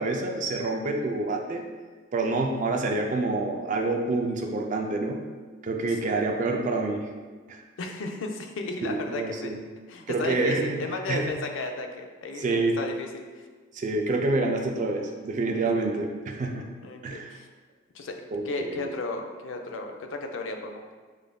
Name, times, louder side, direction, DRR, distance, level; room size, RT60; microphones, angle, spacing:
voice 1, 0.0-1.6 2.1-5.2 5.6-7.1 7.5-7.6 8.8-9.6 10.1-10.8 11.1-11.3 12.4-12.8 13.7-16.7 17.0-17.3 18.3-18.9, right 3 dB, 40° right, 2 dB, 0.4 m, -27 dB
voice 2, 5.9-6.2 7.8-9.5 9.9-13.2 15.5-15.9 16.8-17.5 17.9-18.2 18.5-20.9, left 3 dB, 75° left, 4 dB, 0.4 m, -34 dB
5.1 x 2.5 x 2.2 m, 1.4 s
head